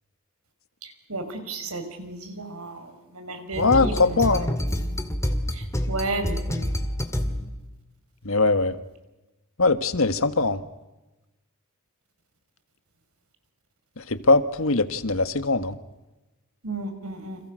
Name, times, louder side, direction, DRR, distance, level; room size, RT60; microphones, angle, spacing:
voice 1, 0.8-4.2 5.5-6.8 16.6-17.4, right 2 dB, 85° right, 7 dB, 5.5 m, -33 dB
sound 1, 3.5-7.7, equal, 15° left, 2.2 m, -28 dB
voice 2, 3.6-4.5 8.2-8.8 9.6-10.6 14.0-15.8, left 3 dB, 65° left, 11 dB, 1.7 m, -21 dB
30.0 x 27.5 x 6.4 m, 1.0 s
head